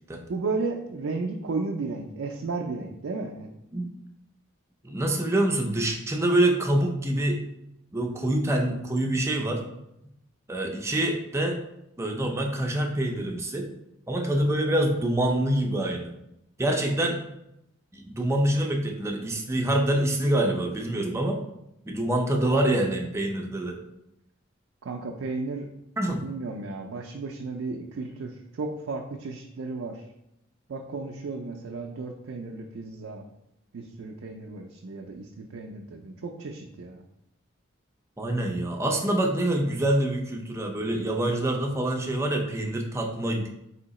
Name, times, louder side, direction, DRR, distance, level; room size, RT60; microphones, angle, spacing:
voice 1, 0.3-3.5 24.8-25.7 26.2-30.0 30.7-33.3 33.7-37.0, right 3 dB, 70° right, 2 dB, 0.4 m, -34 dB
voice 2, 4.8-7.4 7.9-9.7 10.5-11.6 12.0-13.7 14.1-16.1 16.6-17.2 17.9-21.4 21.9-23.8 26.0-26.2 38.2-43.5, right 1 dB, 15° right, 2 dB, 0.5 m, -26 dB
3.7 x 2.8 x 4.0 m, 0.84 s
head